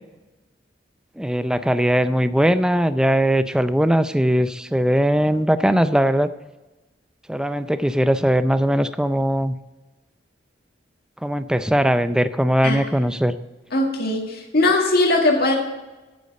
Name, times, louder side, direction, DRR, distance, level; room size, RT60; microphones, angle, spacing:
voice 1, 1.2-6.3 7.3-9.6 11.2-13.4, equal, 5° right, 12 dB, 0.4 m, -20 dB
voice 2, 13.7-15.5, left 2 dB, 60° left, 0 dB, 1.8 m, -19 dB
8.4 x 8.1 x 7.4 m, 1.1 s
head